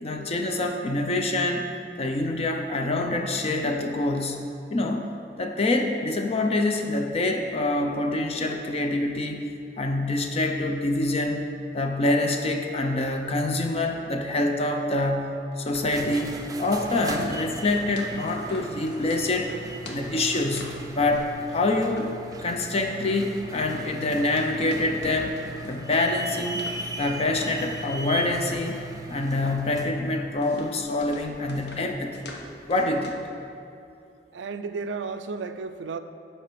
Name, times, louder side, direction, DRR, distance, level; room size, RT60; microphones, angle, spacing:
voice 1, 0.0-1.7 2.0-5.1 5.4-9.5 9.8-11.5 11.7-19.5 19.9-22.1 22.4-26.6 27.0-28.8 29.1-32.3 32.7-33.2, left 2 dB, 35° left, 4 dB, 0.5 m, -26 dB
sound 1, 15.5-33.3, left 2 dB, 65° left, 0.9 m, -45 dB
sound 2, 15.7-30.0, right 2 dB, 20° right, 0.5 m, -38 dB
voice 2, 34.3-36.0, right 4 dB, 90° right, 10 dB, 0.4 m, -33 dB
9.7 x 3.4 x 6.8 m, 2.5 s
head